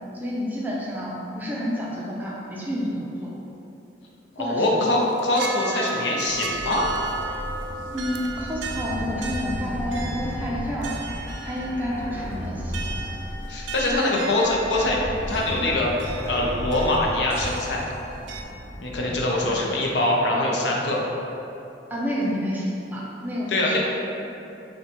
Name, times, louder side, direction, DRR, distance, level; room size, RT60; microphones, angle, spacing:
voice 1, 0.2-3.3 4.4-4.9 7.9-10.9 11.4-12.7 13.9-14.1 15.6-15.7 19.4-19.6 20.3-20.5 21.9-23.8, equal, 10° right, -5 dB, 0.5 m, -29 dB
voice 2, 4.4-6.9 13.5-15.0 15.3-15.9 16.3-17.8 18.8-21.1 23.5-23.8, left 1 dB, 70° left, -2 dB, 0.6 m, -23 dB
sound 1, 4.9-18.4, right 3 dB, 80° right, 0.4 m, -36 dB
sound 2, 6.3-19.3, equal, 25° left, 1.0 m, -35 dB
5.8 x 2.2 x 2.9 m, 2.8 s
head